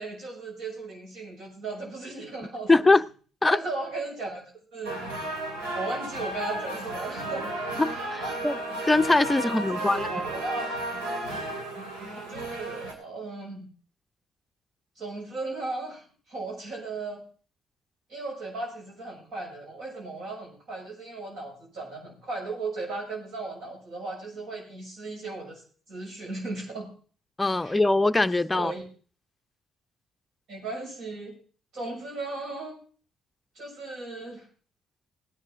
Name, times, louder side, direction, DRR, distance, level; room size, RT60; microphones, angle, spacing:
voice 1, 0.0-2.7 3.5-5.0 5.7-7.5 8.2-8.4 9.4-10.7 12.1-13.7 15.0-17.2 18.1-25.6 25.9-26.9 27.6-27.8 28.5-28.8 30.5-31.3 31.7-32.8 33.6-34.5, right 3 dB, 60° right, 6.8 m, -36 dB
voice 2, 2.7-3.0 3.4-3.6 7.8-10.1 27.4-28.7, left 2 dB, 15° left, 0.6 m, -22 dB
sound 1, 4.8-12.9, right 1 dB, 80° right, 2.6 m, -33 dB
17.0 x 9.8 x 3.8 m
hypercardioid pair, 45°, 0 cm